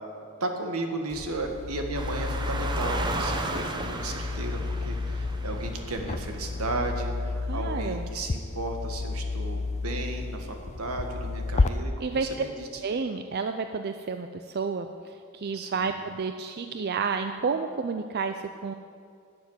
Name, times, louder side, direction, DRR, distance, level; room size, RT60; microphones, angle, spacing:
voice 1, 0.4-12.8 15.5-16.0, right 2 dB, 75° right, 4 dB, 1.6 m, -34 dB
sound 1, 1.1-11.7, left 3 dB, 30° left, 0.4 m, -31 dB
sound 2, 1.9-7.0, right 2 dB, 20° right, 0.8 m, -35 dB
voice 2, 7.5-8.1 12.0-12.3 12.8-18.7, right 5 dB, 45° right, 7 dB, 0.4 m, -31 dB
12.0 x 7.0 x 9.5 m, 2.3 s
head